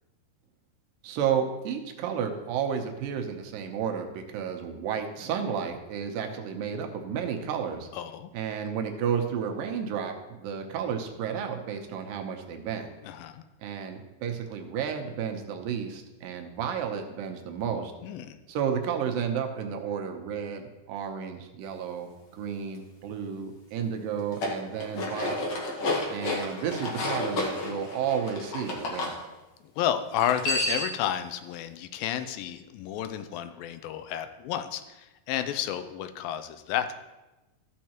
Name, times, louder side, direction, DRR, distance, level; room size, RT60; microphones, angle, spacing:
voice 1, 1.0-7.9 8.3-12.9 13.6-17.9 18.5-25.4 26.1-29.1, right 7 dB, 80° right, 4 dB, 2.5 m, -32 dB
voice 2, 7.9-8.3 13.0-13.4 18.0-18.4 29.8-36.9, left 10 dB, 85° left, 10 dB, 2.3 m, -31 dB
sound 1, 24.2-29.1 30.1-31.0, left 2 dB, 55° left, 1.9 m, -31 dB
14.0 x 6.4 x 2.9 m, 1.0 s
omnidirectional pair, 4.1 m